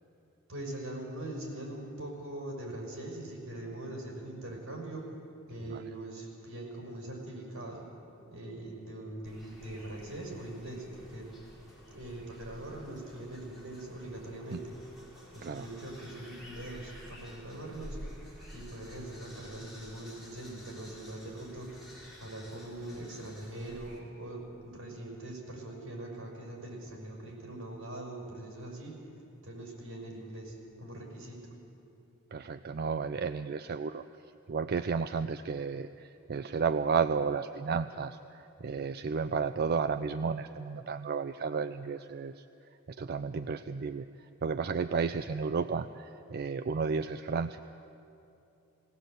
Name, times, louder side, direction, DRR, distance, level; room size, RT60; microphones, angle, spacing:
voice 1, 0.5-5.1 5.5-7.9 8.3-11.3 11.9-14.7 15.3-18.0 18.5-21.8 22.2-29.0 29.4-31.5, right 1 dB, 80° right, -1 dB, 5.7 m, -42 dB
sound 1, 9.2-24.0, equal, ahead, 4.8 m, -51 dB
voice 2, 32.3-34.0 34.5-42.4 42.9-44.1 44.4-47.6, right 5 dB, 50° right, 10 dB, 0.4 m, -32 dB
19.0 x 18.5 x 7.9 m, 2.8 s
head